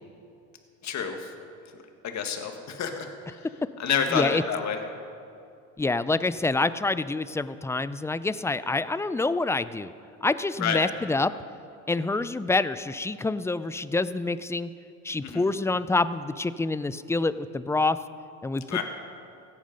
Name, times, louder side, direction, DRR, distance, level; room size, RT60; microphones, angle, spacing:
voice 1, 0.8-1.2 2.1-3.1 3.8-4.8 10.6-10.8 15.2-15.4 18.7-18.8, left 7 dB, 50° left, 5 dB, 1.8 m, -28 dB
voice 2, 4.1-4.4 5.8-9.9 10.2-11.3 11.9-14.7 15.0-18.0 18.4-18.8, left 3 dB, 10° left, 15 dB, 0.3 m, -27 dB
16.0 x 8.8 x 5.2 m, 2.5 s
hypercardioid pair, 70°, 37 cm